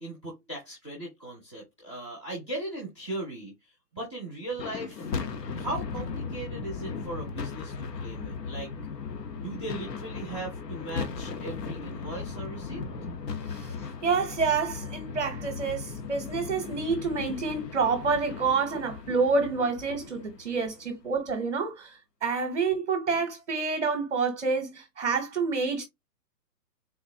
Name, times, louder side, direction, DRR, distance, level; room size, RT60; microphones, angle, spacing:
voice 1, 0.0-5.1 5.5-8.7 9.3-12.8 19.1-19.2 20.0-20.1, right 2 dB, 20° left, 0.7 m, -38 dB
sound 1, 4.5-20.9, left 5 dB, 75° left, 1.0 m, -37 dB
voice 2, 14.0-25.9, right 4 dB, 45° right, 0.7 m, -28 dB
3.9 x 2.6 x 2.6 m
hypercardioid pair, 180°, 49 cm